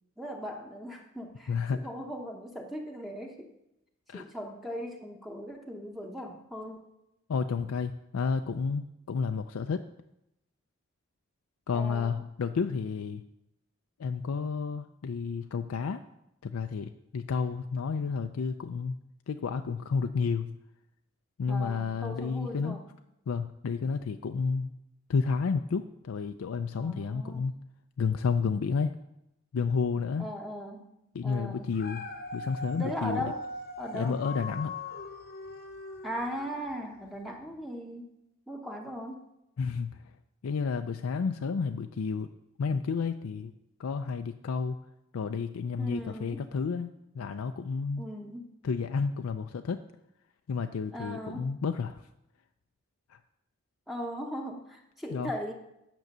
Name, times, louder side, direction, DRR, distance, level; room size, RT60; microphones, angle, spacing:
voice 1, 0.2-3.6 4.1-6.8 11.7-12.2 21.5-22.9 26.7-27.5 30.2-30.9 31.2-31.7 32.7-33.4 33.8-34.2 36.0-38.2 38.5-39.2 45.8-46.5 48.0-48.5 50.9-51.5 53.9-55.5, equal, ahead, 1 dB, 0.8 m, -39 dB
voice 2, 1.5-1.8 4.1-4.3 7.3-9.8 11.7-13.2 14.0-16.0 16.4-19.0 19.3-20.6 21.4-22.8 23.3-24.7 25.1-27.5 28.0-28.9 29.5-30.3 31.1-32.0 32.3-33.2 33.9-34.7 39.6-40.0 40.4-42.3 42.6-43.5 43.8-44.8 45.1-48.1 48.6-49.8 50.5-52.0 53.1-53.2 55.1-55.3, left 5 dB, 90° left, 8 dB, 0.4 m, -31 dB
Dog, 31.5-36.9 37.4-37.5, left 2 dB, 50° left, 0.8 m, -41 dB
9.1 x 6.1 x 6.6 m, 0.85 s
head